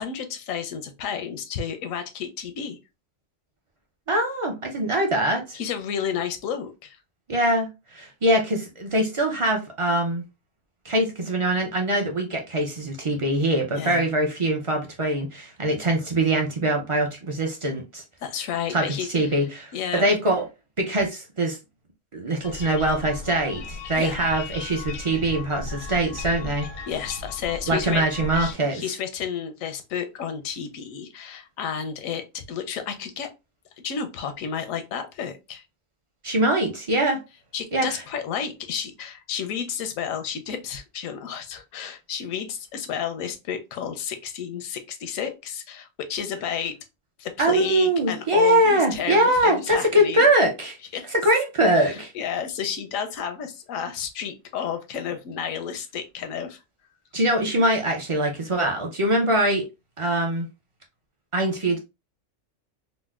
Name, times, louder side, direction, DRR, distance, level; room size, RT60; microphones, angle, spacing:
voice 1, 0.0-2.8 5.5-7.0 13.8-14.0 18.2-19.4 19.7-20.0 24.0-24.2 26.9-28.0 28.3-33.3 33.8-35.6 37.5-46.7 47.2-50.2 50.9-51.1 51.7-56.6, left 7 dB, 85° left, 1.0 m, -31 dB
voice 2, 4.1-5.6 7.3-10.2 10.8-18.0 18.7-18.8 19.1-20.4 20.8-21.6 22.1-26.7 27.7-28.8 36.2-37.2 37.7-38.0 47.4-50.8 51.1-52.1 57.1-59.7 60.0-60.5 61.3-61.8, right 1 dB, 50° right, 0.3 m, -23 dB
sound 1, 22.4-28.5, left 3 dB, 65° left, 0.6 m, -36 dB
4.0 x 2.1 x 2.3 m
omnidirectional pair, 1.4 m